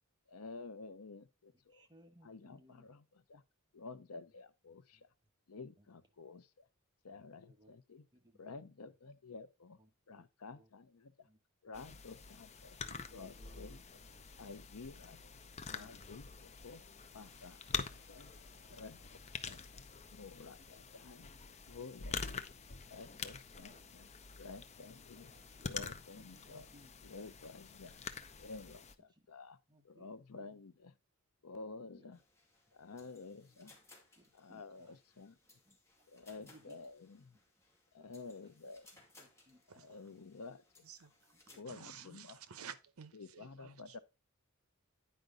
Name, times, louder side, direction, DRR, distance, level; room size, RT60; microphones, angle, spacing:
voice 1, 0.3-1.9 2.2-3.4 3.7-5.1 5.5-6.7 7.0-8.1 8.4-9.8 10.1-11.3 11.6-12.8 13.1-13.8 14.4-15.3 15.7-16.8 17.1-18.3 18.7-19.0 19.3-19.8 20.1-21.3 21.7-22.5 22.9-24.1 24.4-25.3 25.6-26.7 27.0-28.1 28.4-29.6 29.8-30.9 31.4-32.2 32.7-33.7 34.3-35.4 36.1-37.4 37.9-39.0 39.7-40.8 41.6-42.4 43.1-44.0, left 4 dB, 85° left, 0.7 m, -51 dB
voice 2, 1.7-2.9 4.9-5.0 5.8-5.9 7.1-7.7 8.1-8.5 9.8-10.3 10.5-10.7 11.2-11.4 12.8-14.2 15.6-16.2 19.0-19.3 19.7-19.8 20.6-20.8 23.7-23.8 25.1-25.7 26.2-26.9 27.9-28.0 29.1-29.3 29.7-30.6 31.8-32.1 32.8-33.2 34.2-35.0 35.6-36.1 36.4-36.8 38.0-38.3 39.2-40.3 41.3-42.2, equal, 20° right, 1.2 m, -65 dB
sound 1, 11.7-28.9, left 5 dB, 30° left, 0.6 m, -46 dB
sound 2, 17.0-23.3, left 4 dB, 45° left, 3.8 m, -71 dB
sound 3, 32.1-41.6, left 2 dB, 15° left, 2.3 m, -65 dB
voice 3, 41.7-44.0, right 7 dB, 70° right, 0.8 m, -52 dB
9.5 x 5.1 x 3.8 m
head